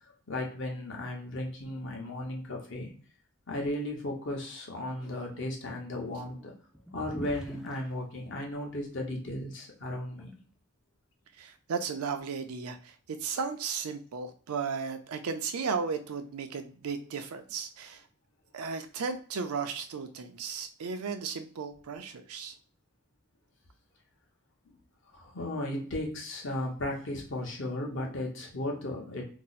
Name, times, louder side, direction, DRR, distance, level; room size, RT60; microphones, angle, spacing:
voice 1, 0.3-2.9 3.5-6.5 6.9-10.3 24.7-24.8 25.1-29.2, left 1 dB, 55° left, 0 dB, 0.9 m, -35 dB
sound 1, 6.7-7.8 9.0-9.1 9.8-10.3, equal, ahead, 0.3 m, -43 dB
voice 2, 11.4-18.0 18.5-22.5, right 5 dB, 90° right, 8 dB, 0.5 m, -35 dB
2.7 x 2.0 x 4.0 m, 0.43 s
head